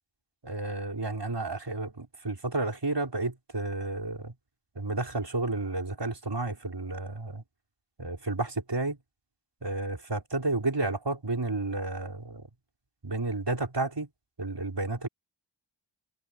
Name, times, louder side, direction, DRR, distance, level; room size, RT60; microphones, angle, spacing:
voice 1, 0.4-4.3 4.8-7.4 8.0-9.0 9.6-12.4 13.0-14.1 14.4-15.1, right 2 dB, 60° right, 5.4 m, -31 dB
wide cardioid pair, 45°, 46 cm